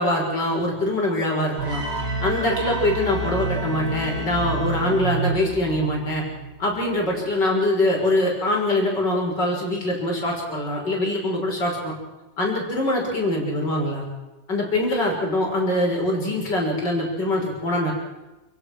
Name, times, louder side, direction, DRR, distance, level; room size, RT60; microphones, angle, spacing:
voice 1, 0.0-1.8 2.2-6.2 6.6-11.9 12.4-14.1 14.5-17.9, left 1 dB, 65° left, 0 dB, 6.7 m, -23 dB
Bowed string instrument, 1.4-5.5, left 3 dB, 40° left, 2.0 m, -35 dB
sound 1, 1.6-6.7, right 4 dB, 50° right, 3.0 m, -29 dB
29.0 x 17.0 x 6.3 m, 1.1 s
omnidirectional pair, 2.0 m